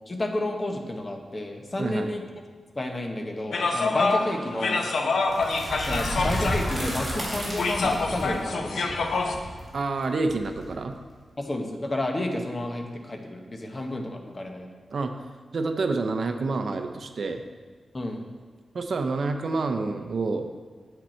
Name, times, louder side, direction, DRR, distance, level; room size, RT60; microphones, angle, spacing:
voice 1, 0.1-2.2 2.7-4.9 5.9-8.9 11.4-14.7 17.9-18.2, left 1 dB, 25° left, 3 dB, 1.0 m, -31 dB
voice 2, 1.8-2.1 9.7-11.0 14.9-15.2 15.5-17.4 18.7-20.5, right 3 dB, 55° right, 6 dB, 0.6 m, -28 dB
sound 1, 3.5-9.4, left 3 dB, 80° left, 0.9 m, -27 dB
sound 2, 5.3-11.1, equal, 10° right, 2.9 m, -33 dB
9.0 x 8.1 x 4.4 m, 1.5 s
wide cardioid pair, 160°, 0 cm